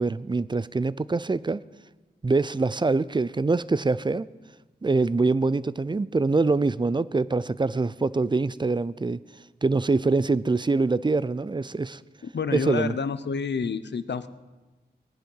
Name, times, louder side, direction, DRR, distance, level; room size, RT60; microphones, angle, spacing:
voice 1, 0.0-1.6 2.2-4.3 4.8-9.2 9.6-12.0 12.5-13.0, right 3 dB, 25° right, 18 dB, 0.4 m, -24 dB
voice 2, 12.3-14.3, left 5 dB, 75° left, 13 dB, 0.7 m, -28 dB
19.0 x 10.5 x 5.6 m, 1.2 s
wide cardioid pair, 70°, 18 cm